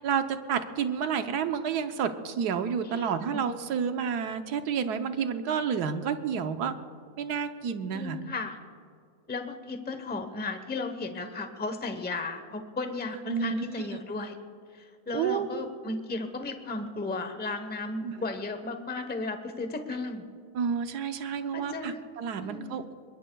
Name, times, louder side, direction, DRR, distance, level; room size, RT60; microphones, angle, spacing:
voice 1, 0.0-6.7 7.2-8.2 13.3-14.0 15.1-15.5 18.0-18.2 20.5-22.9, right 7 dB, 85° right, 8 dB, 1.4 m, -30 dB
voice 2, 2.8-3.4 7.9-8.6 9.3-14.4 14.7-20.3 21.5-22.0 22.4-22.8, left 3 dB, 10° left, 7 dB, 0.7 m, -35 dB
25.0 x 22.0 x 2.3 m, 2.3 s
omnidirectional pair, 1.7 m